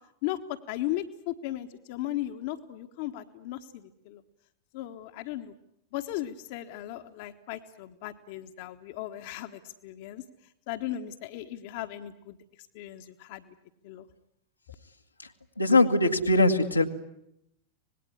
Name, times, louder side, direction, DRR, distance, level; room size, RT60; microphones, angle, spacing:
voice 1, 0.2-4.2 4.7-5.5 5.9-10.2 10.7-12.4 12.7-13.5 13.8-14.1, left 13 dB, 50° left, 7 dB, 1.3 m, -36 dB
voice 2, 15.6-16.8, left 2 dB, 85° left, 2 dB, 1.7 m, -21 dB
26.0 x 19.5 x 9.7 m, 0.77 s
figure-of-eight pair, 90°, 0 cm